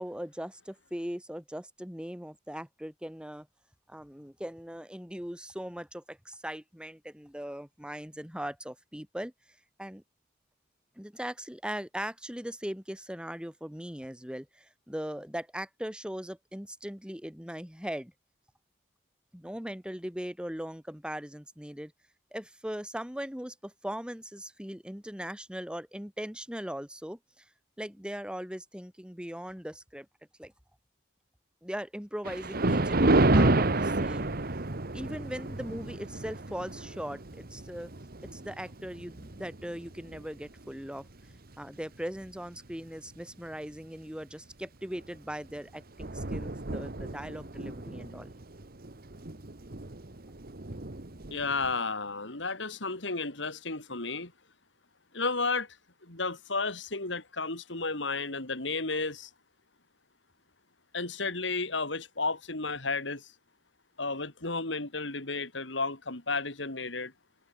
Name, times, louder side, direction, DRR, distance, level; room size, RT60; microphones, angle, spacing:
voice 1, 0.0-3.5 3.9-9.3 9.8-10.0 11.0-18.1 19.3-21.9 22.3-27.2 27.8-30.1 30.4-30.5 31.6-34.3 34.9-37.9 38.3-41.1 41.6-48.3, equal, 5° right, 2.8 m, -39 dB
Thunder, 32.3-40.8 41.3-41.5 42.2-42.3 42.7-42.8 45.0-45.2 45.5-45.6 45.8-51.8, right 2 dB, 55° right, 1.6 m, -30 dB
voice 2, 51.3-54.3 55.1-55.8 56.0-59.3 60.9-63.3 64.0-67.1, left 3 dB, 75° left, 3.9 m, -33 dB
head